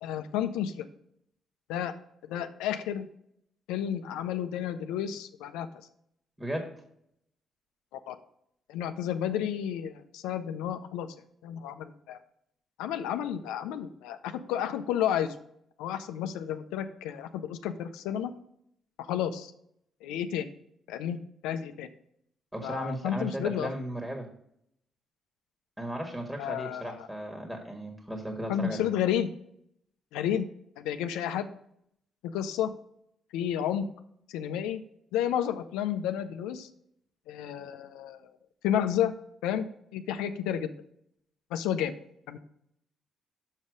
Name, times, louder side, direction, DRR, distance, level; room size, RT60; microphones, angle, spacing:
voice 1, 0.0-0.9 1.7-1.9 2.3-3.1 3.7-5.7 7.9-8.2 8.7-11.1 11.4-12.2 12.8-15.3 15.8-18.3 19.0-19.5 20.0-20.5 20.9-21.2 21.4-21.9 22.6-23.7 26.4-27.1 28.5-29.3 30.1-30.5 30.8-31.5 32.2-32.7 33.3-33.9 34.3-34.8 35.1-36.7 37.3-38.3 38.6-39.1 39.4-39.7 39.9-40.7 41.5-41.9 42.3-42.4, left 10 dB, 80° left, 9 dB, 0.4 m, -31 dB
voice 2, 22.5-24.3 25.8-28.9, right 1 dB, 15° right, 3 dB, 1.6 m, -35 dB
6.3 x 5.4 x 5.1 m, 0.71 s
hypercardioid pair, 50°, 0 cm